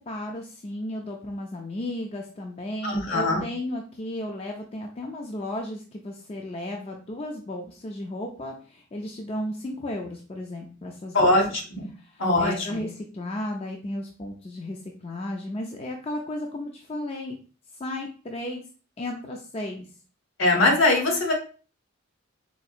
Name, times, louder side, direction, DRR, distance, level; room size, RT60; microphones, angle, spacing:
voice 1, 0.0-11.4 12.0-17.4 17.7-18.7 19.0-19.9, left 1 dB, 30° left, 2 dB, 0.3 m, -34 dB
voice 2, 2.8-3.4 11.1-11.9 12.2-12.8 20.4-21.3, left 2 dB, 65° left, 1 dB, 1.0 m, -22 dB
4.2 x 2.7 x 2.4 m, 0.39 s
head